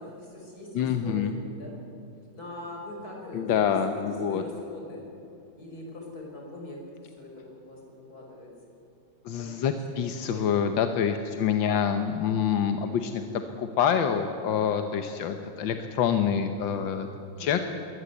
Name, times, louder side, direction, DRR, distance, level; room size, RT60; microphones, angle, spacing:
voice 1, 0.0-1.7 2.3-5.1 5.6-6.8 7.0-8.5 9.4-9.6 9.9-10.4 17.4-17.7, left 1 dB, 55° left, -1 dB, 5.9 m, -42 dB
voice 2, 0.7-1.3 3.3-4.4 9.3-17.1 17.4-17.6, left 8 dB, 90° left, 7 dB, 1.7 m, -26 dB
22.0 x 18.5 x 8.2 m, 2.9 s
omnidirectional pair, 2.0 m